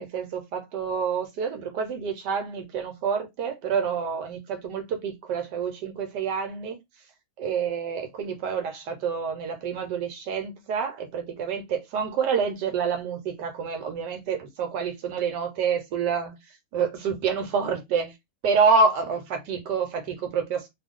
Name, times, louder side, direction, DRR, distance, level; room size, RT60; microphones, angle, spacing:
voice 1, 0.0-6.8 7.4-16.4 16.7-18.1 18.4-20.7, right 5 dB, 80° right, 1.3 m, -27 dB
2.6 x 2.4 x 3.5 m
omnidirectional pair, 1.9 m